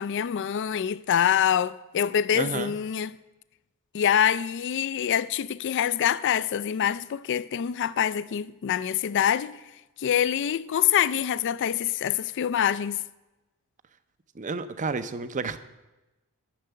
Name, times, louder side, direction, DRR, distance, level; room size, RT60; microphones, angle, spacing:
voice 1, 0.0-3.1 3.9-9.6 10.0-13.0, left 9 dB, 55° left, 0.3 m, -25 dB
voice 2, 2.3-2.7 14.3-15.6, right 4 dB, 35° right, 0.6 m, -31 dB
10.0 x 6.7 x 9.1 m
head